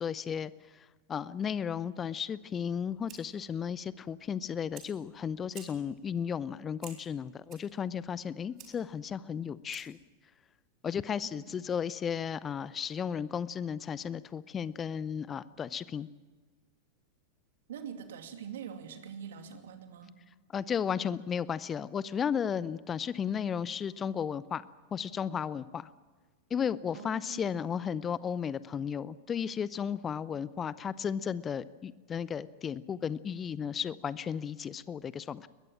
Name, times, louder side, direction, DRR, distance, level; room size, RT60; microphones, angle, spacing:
voice 1, 0.0-10.0 10.8-16.1 20.5-24.6 24.9-25.9 26.5-35.5, left 7 dB, 20° left, 19 dB, 0.6 m, -34 dB
Fire, 2.6-10.1, right 8 dB, 35° right, 4.1 m, -55 dB
voice 2, 11.2-11.6 17.7-20.2 26.9-27.6, right 8 dB, 60° right, 6 dB, 2.6 m, -44 dB
22.0 x 21.0 x 7.4 m, 1.4 s
figure-of-eight pair, 90°, 0 cm